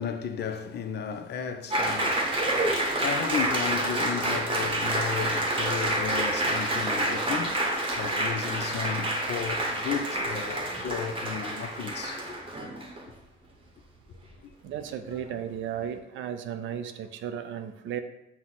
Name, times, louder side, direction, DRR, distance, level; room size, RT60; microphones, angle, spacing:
voice 1, 0.0-12.4 14.1-14.2 15.1-15.4, left 7 dB, 60° left, 0.5 m, -34 dB
Applause, 1.7-13.0, right 1 dB, 25° right, 0.8 m, -28 dB
voice 2, 14.6-18.0, right 9 dB, 75° right, 0.4 m, -35 dB
5.9 x 2.1 x 4.0 m
cardioid pair, 90°, 20 cm